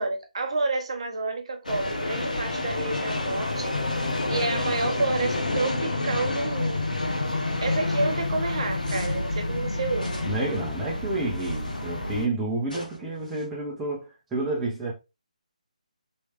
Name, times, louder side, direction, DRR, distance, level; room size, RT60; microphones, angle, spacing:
voice 1, 0.0-3.7 4.3-6.9 7.6-10.1, right 3 dB, 45° right, 0.7 m, -29 dB
sound 1, 1.6-12.3, left 2 dB, 70° left, 0.9 m, -28 dB
sound 2, 8.8-9.3 9.9-10.6 11.3-11.9 12.7-13.5, right 2 dB, 90° left, 1.4 m, -40 dB
voice 2, 10.2-14.9, right 2 dB, 5° right, 0.7 m, -30 dB
3.2 x 3.1 x 2.9 m
figure-of-eight pair, 145°, 4 cm